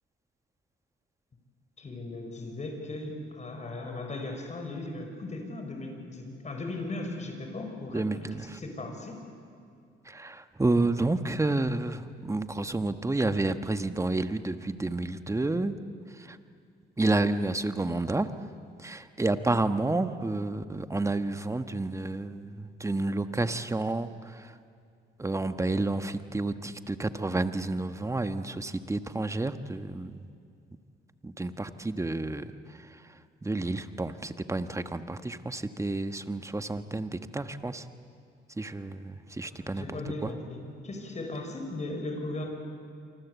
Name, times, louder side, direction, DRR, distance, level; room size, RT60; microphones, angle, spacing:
voice 1, 1.8-9.2 39.4-40.6 40.8-42.5, left 2 dB, 35° left, 3 dB, 6.0 m, -37 dB
voice 2, 7.9-8.6 10.0-15.7 16.2-16.4 17.0-18.3 18.8-24.5 25.2-30.2 31.2-32.5 33.4-37.9 38.6-39.9 40.2-40.3, right 2 dB, 15° right, 10 dB, 1.3 m, -30 dB
27.5 x 24.5 x 8.3 m, 2.4 s
cardioid pair, 90°, 20 cm